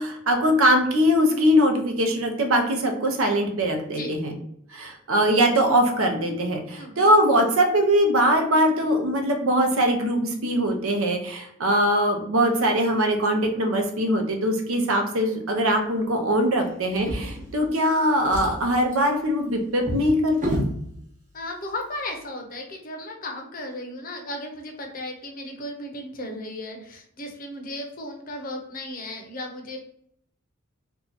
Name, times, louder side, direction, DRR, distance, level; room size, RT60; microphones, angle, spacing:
voice 1, 0.0-4.3 4.7-20.6, equal, 75° right, 4 dB, 0.7 m, -22 dB
voice 2, 6.8-7.1 21.3-29.8, left 1 dB, 40° left, 3 dB, 0.6 m, -35 dB
Drawer open or close, 16.9-17.9 18.2-20.8 21.7-21.8 22.2-22.3, equal, 35° right, 0.9 m, -31 dB
2.8 x 2.3 x 3.9 m, 0.70 s
head